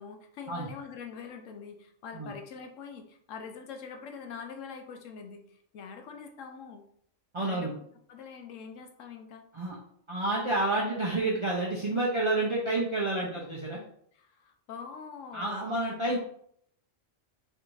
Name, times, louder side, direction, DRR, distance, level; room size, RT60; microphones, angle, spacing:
voice 1, 0.0-6.8 7.4-7.7 8.1-9.4 14.1-15.6 16.0-16.2, left 6 dB, 75° left, 4 dB, 1.0 m, -44 dB
voice 2, 7.3-7.7 9.5-9.8 10.1-13.8 15.3-16.2, right 2 dB, 35° right, -3 dB, 0.4 m, -29 dB
3.2 x 2.6 x 4.5 m, 0.66 s
omnidirectional pair, 1.3 m